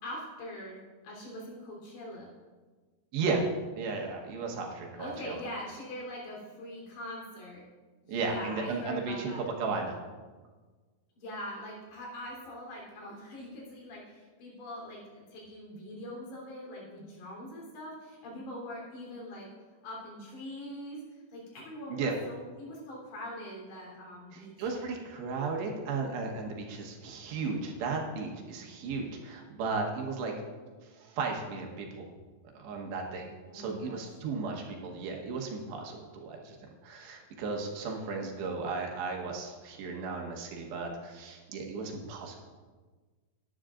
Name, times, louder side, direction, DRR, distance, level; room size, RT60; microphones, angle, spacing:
voice 1, 0.0-2.3 5.0-7.6 8.0-9.5 11.2-19.5 19.8-24.7 33.5-34.1, left 1 dB, 70° left, -4 dB, 5.6 m, -43 dB
voice 2, 3.1-3.4 3.8-5.4 8.1-10.0 21.9-22.2 24.3-30.3 30.8-32.1 32.6-33.2 33.5-36.6 36.8-42.4, right 4 dB, 75° right, 1 dB, 3.3 m, -35 dB
17.5 x 10.5 x 2.5 m, 1.4 s
omnidirectional pair, 5.2 m